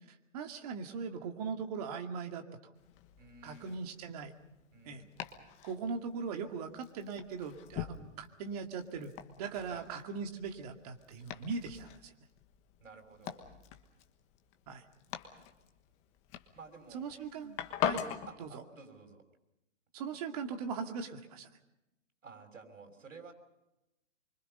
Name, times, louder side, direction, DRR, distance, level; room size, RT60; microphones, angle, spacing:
voice 1, 0.3-2.4 3.4-4.3 4.8-5.0 5.6-9.1 9.4-12.1 14.7-14.8 16.9-18.0 18.4-18.6 19.9-21.5, right 5 dB, 30° right, 5 dB, 2.3 m, -40 dB
Domestic sounds home sounds, 2.8-18.3, left 9 dB, 15° left, 1.4 m, -43 dB
voice 2, 3.2-3.9 4.7-5.1 9.6-9.9 12.8-13.4 16.5-17.1 18.3-19.2 22.2-23.3, right 4 dB, 90° right, 4 dB, 6.3 m, -52 dB
26.0 x 24.5 x 5.6 m, 0.91 s
hypercardioid pair, 160°, 38 cm